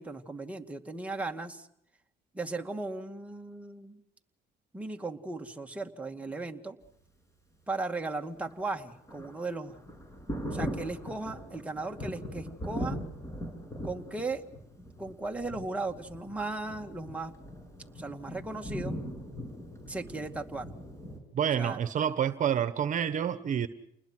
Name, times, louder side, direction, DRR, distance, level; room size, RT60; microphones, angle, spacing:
voice 1, 0.0-1.7 2.3-4.0 4.7-6.8 7.7-9.8 10.5-13.0 13.8-14.4 14.8-17.3 17.9-18.9 19.9-20.7 21.6-21.8, right 3 dB, 10° right, 3 dB, 2.1 m, -37 dB
Thunder, 8.4-21.2, equal, 15° left, 7.0 m, -40 dB
voice 2, 21.3-23.7, right 9 dB, 50° right, 12 dB, 1.3 m, -28 dB
29.5 x 20.5 x 6.2 m, 0.76 s
cardioid pair, 110°, 17 cm